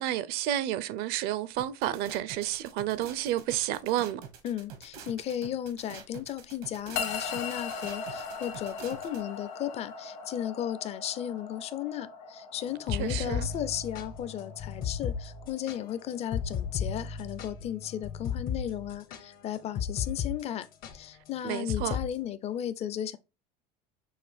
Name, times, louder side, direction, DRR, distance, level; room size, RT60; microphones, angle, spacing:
voice 1, 0.0-4.2 12.9-13.5 21.4-22.0, right 12 dB, 60° right, 0.5 m, -31 dB
sound 1, 1.6-9.2, right 7 dB, 85° right, 1.1 m, -46 dB
voice 2, 4.4-20.7 20.9-23.2, left 10 dB, 35° left, 0.5 m, -35 dB
sound 2, 6.9-17.3, left 5 dB, 75° left, 1.7 m, -40 dB
sound 3, 12.7-20.3 20.6-20.9 21.7-22.1, left 7 dB, 50° left, 0.8 m, -34 dB
6.4 x 2.5 x 3.3 m
supercardioid pair, 120°, 19 cm